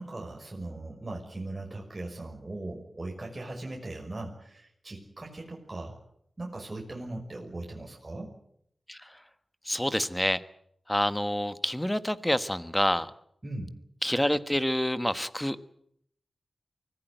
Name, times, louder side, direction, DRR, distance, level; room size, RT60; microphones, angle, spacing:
voice 1, 0.0-6.0 6.4-8.3 13.4-13.7, right 2 dB, 25° right, 0 dB, 5.9 m, -39 dB
voice 2, 8.9-9.2 9.6-10.4 10.9-13.1 14.0-15.6, left 1 dB, 10° left, 12 dB, 1.4 m, -27 dB
24.5 x 16.5 x 9.3 m, 0.71 s
wide cardioid pair, 70°, 0 cm